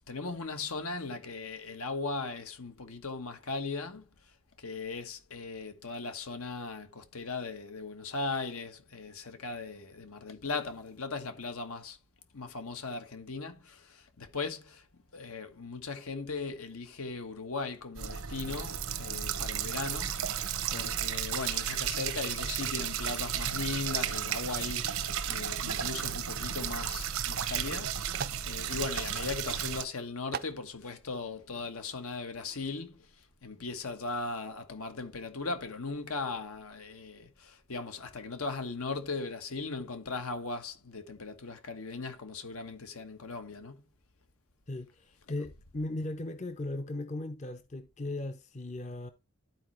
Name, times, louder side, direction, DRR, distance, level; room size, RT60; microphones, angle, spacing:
voice 1, 0.1-4.1 4.6-12.0 12.3-14.9 15.1-33.1 33.4-43.8, left 3 dB, 85° left, 1.4 m, -38 dB
sound 1, 18.0-29.8, right 8 dB, 80° right, 0.9 m, -33 dB
sound 2, 25.8-26.1 27.0-27.1 27.4-27.5 28.1-28.4 29.1-29.3 29.8-29.9 30.3-30.6, right 6 dB, 45° right, 0.4 m, -40 dB
voice 2, 44.7-49.1, left 2 dB, 30° left, 0.6 m, -37 dB
12.5 x 4.4 x 3.1 m
head